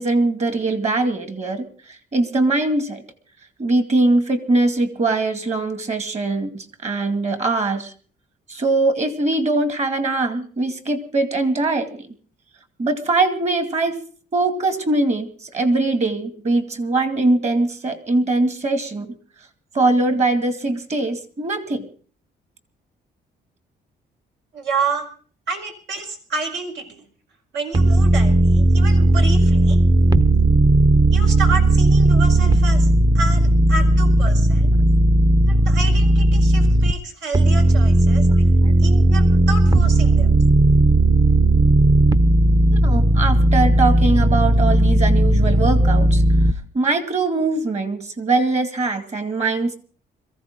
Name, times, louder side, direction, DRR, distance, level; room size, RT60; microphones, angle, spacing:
voice 1, 0.0-1.7 2.1-3.0 3.6-7.9 8.5-12.1 12.8-14.0 14.3-19.1 19.7-21.9 38.3-38.4 42.7-46.2 46.7-49.8, right 2 dB, 40° right, 8 dB, 2.3 m, -21 dB
voice 2, 24.5-25.1 25.5-27.1 27.5-29.8 31.1-34.7 35.5-38.3 38.8-40.3, right 4 dB, 80° right, 3 dB, 4.7 m, -29 dB
sound 1, 27.7-36.9 37.3-46.5, right 1 dB, 20° right, 0.8 m, -15 dB
22.0 x 15.0 x 3.8 m, 0.42 s
cardioid pair, 120°, 18 cm